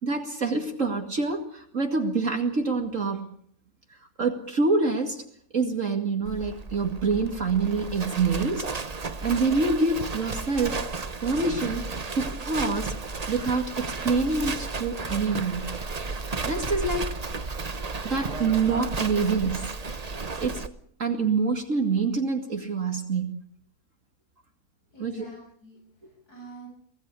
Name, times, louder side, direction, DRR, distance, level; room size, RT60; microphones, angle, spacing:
voice 1, 0.0-3.3 4.2-5.2 5.5-8.7 9.2-10.8 11.2-11.8 12.1-12.9 13.3-15.6 16.2-17.2 18.0-19.7 20.4-20.6 21.0-23.4 25.0-25.3, right 4 dB, 55° right, 4 dB, 2.6 m, -26 dB
Livestock farm animals working animals, 6.2-20.7, right 4 dB, 30° right, 1.1 m, -33 dB
voice 2, 24.9-26.7, right 4 dB, 80° left, -2 dB, 8.5 m, -47 dB
24.5 x 17.5 x 8.4 m, 0.64 s
omnidirectional pair, 1.6 m